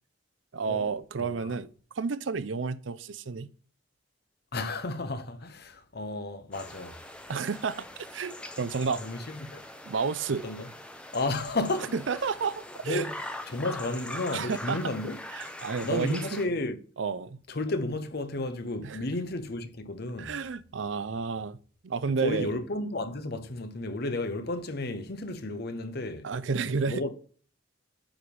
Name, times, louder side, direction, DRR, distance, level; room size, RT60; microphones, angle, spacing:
voice 1, 0.5-1.7 2.0-3.5 7.3-7.9 8.1-9.0 9.9-10.4 12.1-13.0 14.3-14.8 15.4-16.4 17.0-17.4 18.8-19.0 20.2-21.6 21.8-22.5 26.2-27.0, right 5 dB, 80° right, 0.5 m, -31 dB
voice 2, 1.2-1.6 4.5-7.0 8.9-9.6 10.3-10.7 11.1-12.0 12.8-13.2 13.5-15.2 15.8-16.8 17.5-20.4 22.1-26.3 26.9-27.1, left 2 dB, 55° left, 0.9 m, -33 dB
sound 1, 6.5-16.5, left 1 dB, 5° left, 0.7 m, -42 dB
8.9 x 3.3 x 5.3 m
head